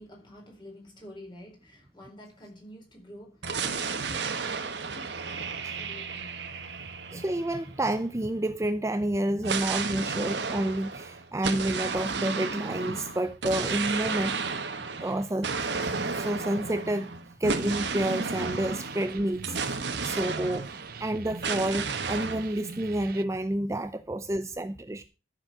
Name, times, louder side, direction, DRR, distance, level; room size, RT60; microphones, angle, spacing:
voice 1, 0.0-5.3 5.8-6.3, left 1 dB, 25° left, 4.3 m, -48 dB
sound 1, 3.4-8.1 9.4-21.1 21.4-22.5, right 4 dB, 75° right, 1.5 m, -33 dB
voice 2, 7.1-14.5 15.0-15.5 16.1-20.7 21.0-25.0, right 1 dB, 15° right, 0.5 m, -29 dB
sound 2, 17.5-23.2, right 4 dB, 55° right, 0.7 m, -42 dB
13.0 x 6.9 x 6.0 m
head